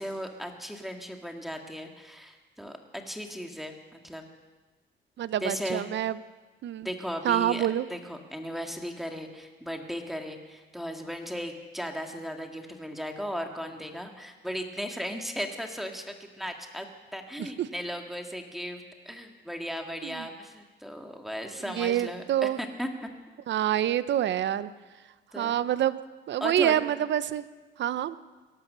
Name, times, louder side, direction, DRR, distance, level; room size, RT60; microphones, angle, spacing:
voice 1, 0.0-4.2 5.4-5.9 6.8-16.9 17.1-22.9 25.3-25.6 26.4-26.8, equal, ahead, 3 dB, 2.0 m, -36 dB
voice 2, 5.2-6.1 6.6-6.9 7.2-7.9 17.4-17.7 20.0-20.3 21.7-22.6 23.5-24.7 25.3-26.0 26.3-27.4 27.8-28.2, right 11 dB, 65° right, 15 dB, 0.7 m, -27 dB
17.5 x 11.5 x 6.8 m, 1.3 s
cardioid pair, 90°, 20 cm